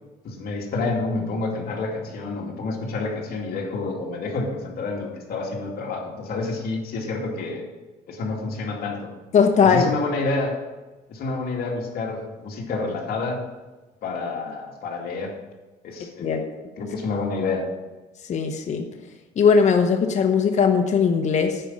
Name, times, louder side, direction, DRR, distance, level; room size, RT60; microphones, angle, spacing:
voice 1, 0.2-7.6 8.1-9.1 9.6-10.6 11.1-13.4 14.0-15.3 15.8-16.5 16.8-17.7, left 3 dB, 65° left, 0 dB, 2.4 m, -28 dB
voice 2, 9.3-9.9 16.2-16.4 18.3-18.8 19.4-21.6, left 6 dB, 45° left, 4 dB, 1.0 m, -19 dB
10.0 x 5.3 x 7.5 m, 1.2 s
cardioid pair, 110°, 17 cm